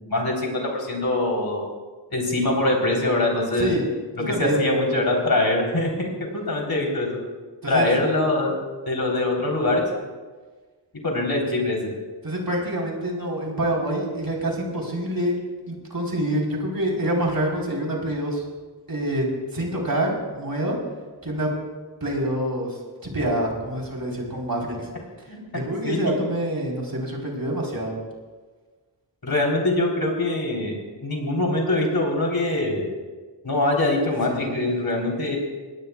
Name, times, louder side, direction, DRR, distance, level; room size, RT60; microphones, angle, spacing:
voice 1, 0.0-1.7 2.1-3.7 4.2-7.2 7.7-8.6 8.9-9.8 11.0-11.9 25.3-25.4 25.8-26.0 29.2-30.7 31.0-32.9 33.4-35.4, left 2 dB, 55° left, -1 dB, 4.0 m, -23 dB
voice 2, 4.2-4.6 7.6-7.9 12.2-15.4 15.7-18.4 18.9-19.3 19.5-20.8 21.2-21.5 22.0-24.9 25.5-27.9 34.3-34.5, right 1 dB, 50° right, -2 dB, 4.3 m, -26 dB
23.5 x 18.5 x 2.4 m, 1.4 s
wide cardioid pair, 85°, 44 cm